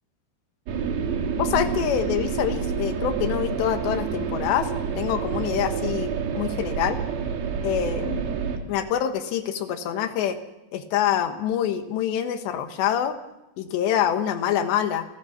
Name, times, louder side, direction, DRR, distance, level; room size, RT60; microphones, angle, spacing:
sound 1, 0.7-8.6, right 6 dB, 90° right, 4.4 m, -28 dB
voice 1, 1.4-4.7 5.0-7.0 7.6-8.2 8.7-10.4 10.7-13.2 13.6-15.1, left 10 dB, 85° left, 8 dB, 3.6 m, -25 dB
28.5 x 15.0 x 7.2 m, 0.95 s
omnidirectional pair, 4.9 m